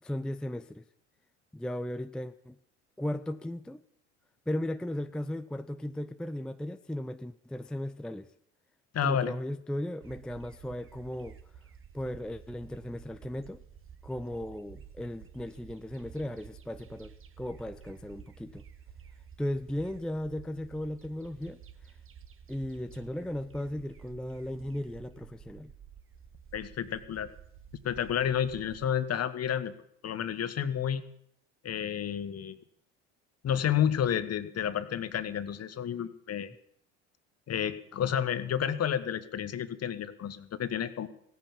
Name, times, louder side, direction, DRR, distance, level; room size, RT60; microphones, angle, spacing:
voice 1, 0.0-0.8 1.5-2.6 3.0-3.8 4.5-8.3 9.0-11.4 11.9-13.6 14.0-18.6 19.4-21.9 22.5-25.7, left 1 dB, ahead, 10 dB, 0.6 m, -36 dB
voice 2, 8.9-9.3 26.5-27.3 27.8-29.7 30.0-31.0 31.6-32.6 33.4-36.5 37.5-41.1, left 9 dB, 40° left, 12 dB, 1.4 m, -30 dB
sound 1, 10.0-28.9, right 8 dB, 35° right, 1.3 m, -52 dB
16.0 x 9.6 x 7.4 m, 0.70 s
hypercardioid pair, 70°, 37 cm